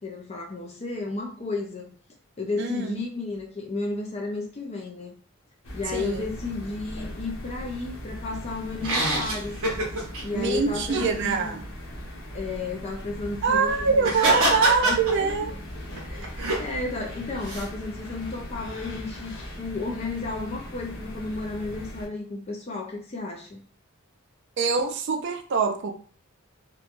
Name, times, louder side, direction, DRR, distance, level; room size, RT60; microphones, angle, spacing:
voice 1, 0.0-1.9 2.4-5.1 5.7-9.6 10.2-11.6 12.3-13.9 14.4-15.5 16.0-23.6, left 3 dB, 30° left, 0.5 m, -33 dB
voice 2, 2.6-2.9 5.9-6.2 10.3-11.7 13.4-15.5 24.6-25.9, right 5 dB, 55° right, 0.4 m, -24 dB
sound 1, 5.6-22.1, equal, 85° left, 0.9 m, -39 dB
sound 2, 8.8-10.2 10.9-11.1 14.0-15.5 16.0-16.6 17.4-17.7, right 1 dB, 85° right, 0.8 m, -25 dB
3.0 x 2.2 x 2.5 m
head